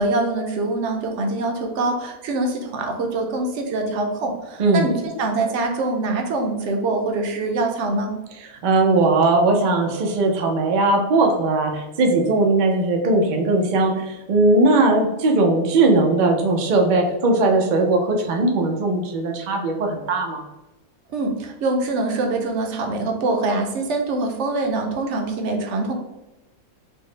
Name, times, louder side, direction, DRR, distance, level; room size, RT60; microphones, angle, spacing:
voice 1, 0.0-8.2 21.1-25.9, right 2 dB, 65° right, 3 dB, 0.8 m, -24 dB
voice 2, 4.6-4.9 8.6-20.4, right 2 dB, 80° right, 2 dB, 0.4 m, -19 dB
4.4 x 2.0 x 3.1 m, 1.0 s
omnidirectional pair, 1.5 m